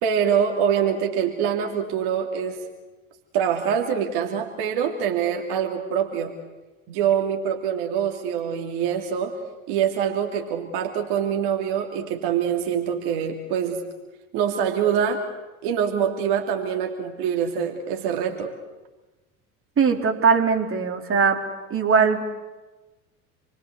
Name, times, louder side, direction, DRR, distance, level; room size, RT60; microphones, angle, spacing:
voice 1, 0.0-2.6 3.3-6.3 6.9-9.3 9.7-13.8 14.3-15.2 15.6-18.5, right 8 dB, 55° right, 3 dB, 3.0 m, -24 dB
voice 2, 19.8-21.4 21.7-22.2, right 6 dB, 30° right, 3 dB, 3.8 m, -20 dB
28.5 x 22.5 x 8.1 m, 1.2 s
figure-of-eight pair, 75°, 46 cm